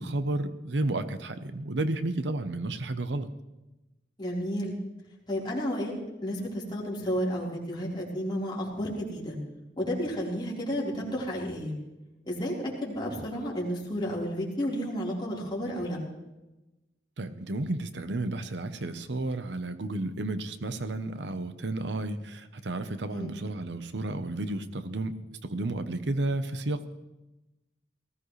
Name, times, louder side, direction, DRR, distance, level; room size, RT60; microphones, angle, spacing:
voice 1, 0.0-3.3 17.2-25.1 25.4-26.9, right 2 dB, 75° right, 10 dB, 0.9 m, -32 dB
voice 2, 4.2-4.7 5.3-5.9 6.2-9.4 9.8-11.7 12.3-12.5 12.8-16.0 23.1-23.3, equal, 25° left, -5 dB, 4.1 m, -32 dB
19.0 x 16.0 x 3.2 m, 1.0 s
head